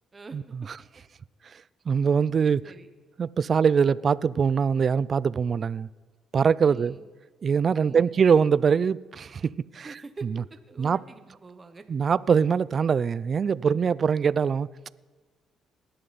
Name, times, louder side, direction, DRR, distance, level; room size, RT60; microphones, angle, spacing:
voice 1, 0.1-0.7 2.6-2.9 6.6-7.1 7.8-8.2 9.8-11.8 13.6-13.7, right 3 dB, 25° right, 1.0 m, -46 dB
voice 2, 1.9-2.6 3.2-5.9 6.3-7.0 7.4-9.9 10.8-11.0 11.9-14.7, right 6 dB, 45° right, 0.3 m, -23 dB
19.0 x 11.5 x 4.1 m
cardioid pair, 105°, 0 cm